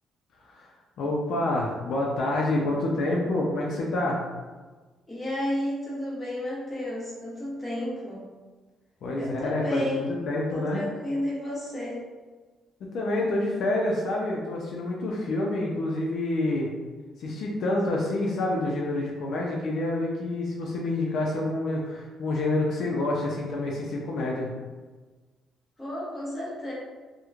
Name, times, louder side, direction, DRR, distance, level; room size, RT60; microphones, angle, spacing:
voice 1, 1.0-4.2 9.0-10.8 12.9-16.7 17.2-24.5, left 2 dB, 65° left, -2 dB, 0.4 m, -27 dB
voice 2, 5.1-8.3 9.2-10.2 10.5-12.0 25.8-26.7, left 1 dB, 10° left, -7 dB, 0.9 m, -32 dB
2.9 x 2.1 x 2.3 m, 1.3 s
cardioid pair, 145°, 0 cm